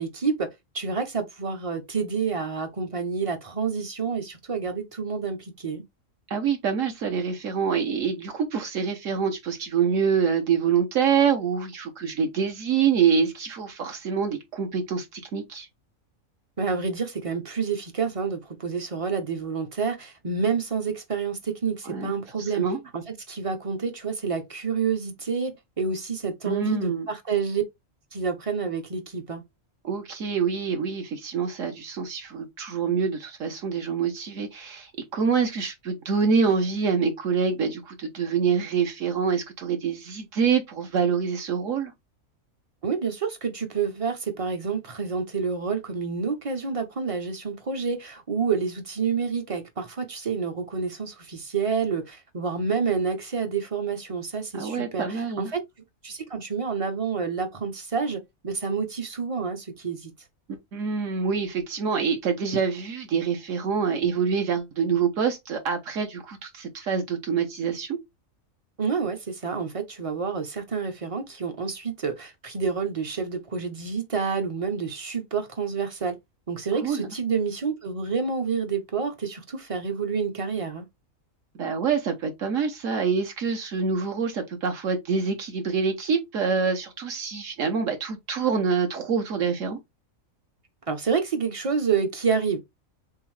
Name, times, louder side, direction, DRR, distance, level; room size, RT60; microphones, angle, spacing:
voice 1, 0.0-5.8 16.6-22.7 22.9-27.6 28.1-29.4 42.8-55.6 56.0-60.1 68.8-76.2 76.5-80.8 90.9-92.6, right 5 dB, 40° right, 0.5 m, -28 dB
voice 2, 6.3-15.7 21.9-22.1 22.4-22.8 26.5-27.1 29.8-41.9 54.5-55.5 60.5-68.0 76.8-77.1 81.6-89.8, right 6 dB, 70° right, 1.2 m, -26 dB
3.6 x 3.4 x 3.1 m
omnidirectional pair, 1.4 m